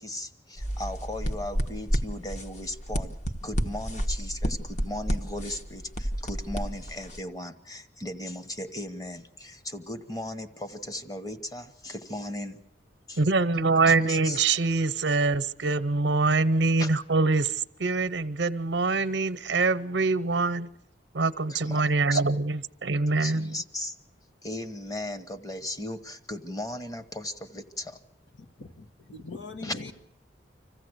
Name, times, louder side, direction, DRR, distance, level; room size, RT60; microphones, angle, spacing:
voice 1, 0.0-3.1 3.4-12.6 13.1-13.2 13.9-14.4 16.8-16.9 21.5-22.2 23.2-23.9 24.4-28.0 29.6-29.9, left 1 dB, 20° left, 9 dB, 1.2 m, -37 dB
sound 1, 0.6-7.2, equal, 40° left, 1.2 m, -31 dB
voice 2, 13.2-20.7 21.1-23.5, right 3 dB, 80° right, 13 dB, 0.8 m, -24 dB
voice 3, 28.4-29.9, left 3 dB, 85° left, 7 dB, 1.5 m, -41 dB
26.5 x 15.0 x 8.0 m, 0.78 s
head